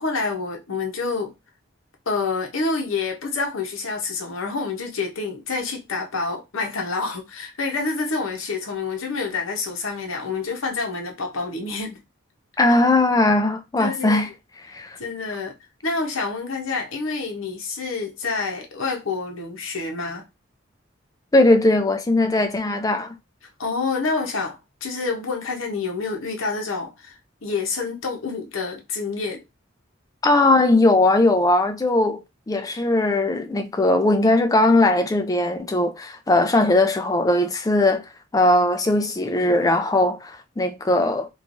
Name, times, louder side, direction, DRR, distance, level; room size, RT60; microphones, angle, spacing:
voice 1, 0.0-1.3 2.1-12.0 13.8-14.2 15.0-15.5 15.8-20.2 23.6-29.4, left 4 dB, 80° left, 0.8 m, -28 dB
voice 2, 12.6-14.3 14.7-15.0 21.3-23.1 30.2-41.3, left 2 dB, 15° left, 0.3 m, -19 dB
3.1 x 2.3 x 2.5 m
head